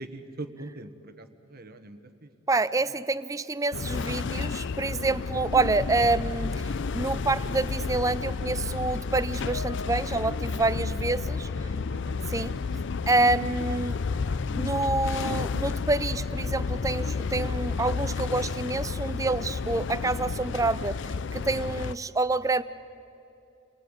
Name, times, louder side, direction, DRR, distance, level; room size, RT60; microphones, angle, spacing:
voice 1, 0.0-2.3 4.8-5.4 7.3-7.6 11.6-12.8 17.4-17.8, right 2 dB, 45° right, 8 dB, 1.4 m, -44 dB
voice 2, 2.5-6.5 6.9-11.5 12.3-12.6 13.1-14.0 14.5-21.0 21.3-22.6, right 3 dB, 15° right, 15 dB, 0.5 m, -27 dB
sound 1, 3.7-21.9, left 4 dB, 60° left, 0.5 m, -31 dB
29.5 x 20.5 x 9.0 m, 2.8 s
head